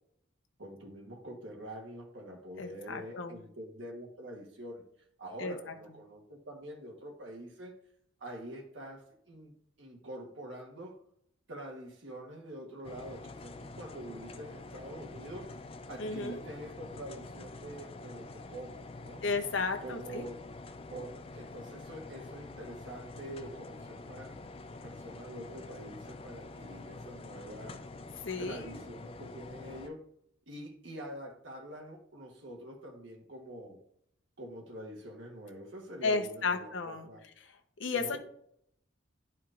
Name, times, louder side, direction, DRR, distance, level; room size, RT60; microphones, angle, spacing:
voice 1, 0.6-4.8 5.2-7.8 8.2-11.0 11.5-15.5 15.9-19.2 19.8-20.4 20.9-27.8 28.4-30.0 30.5-33.8 34.4-37.2 37.9-38.2, right 1 dB, 70° right, 1 dB, 1.2 m, -45 dB
voice 2, 2.6-3.3 5.4-5.5 16.0-16.4 19.2-20.3 28.2-28.8 36.0-37.1 37.8-38.2, left 4 dB, 70° left, 5 dB, 0.8 m, -33 dB
sound 1, 12.8-29.9, left 3 dB, 30° left, 0.4 m, -47 dB
11.5 x 4.5 x 2.5 m, 0.69 s
head